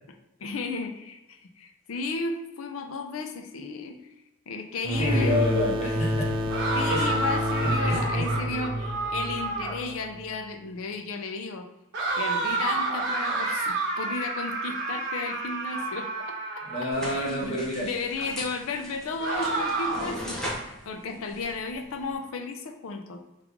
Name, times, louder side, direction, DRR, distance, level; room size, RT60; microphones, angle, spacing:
voice 1, 0.4-4.0 4.5-5.4 6.7-11.7 12.2-16.1 17.0-17.5 17.8-23.2, left 4 dB, 65° left, 5 dB, 0.4 m, -34 dB
sound 1, 4.8-10.3, left 1 dB, 25° right, 0.3 m, -28 dB
voice 2, 5.0-7.1 7.6-8.3 16.6-17.9, left 1 dB, 30° left, -4 dB, 0.9 m, -29 dB
sound 2, 6.5-9.9 11.9-17.2 19.2-20.2, right 3 dB, 60° right, 0.7 m, -30 dB
sound 3, 16.9-22.1, equal, ahead, 0.7 m, -39 dB
2.9 x 2.3 x 3.6 m, 0.98 s
head